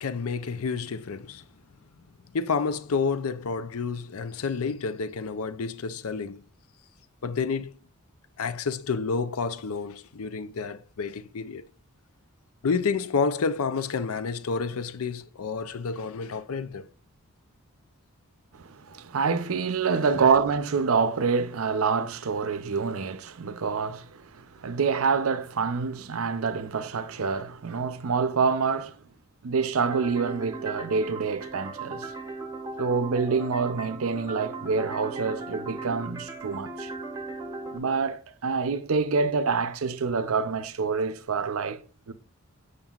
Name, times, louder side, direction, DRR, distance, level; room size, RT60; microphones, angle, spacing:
voice 1, 0.0-1.4 2.3-6.4 7.2-7.8 8.4-11.6 12.6-16.9 20.1-20.2, left 5 dB, 80° left, 0.6 m, -29 dB
voice 2, 18.6-29.0 29.4-32.1 32.8-36.9 37.7-41.8 42.1-42.2, right 5 dB, 75° right, 0.6 m, -27 dB
sound 1, 29.8-37.8, right 3 dB, 15° right, 0.7 m, -38 dB
7.2 x 6.6 x 2.4 m
head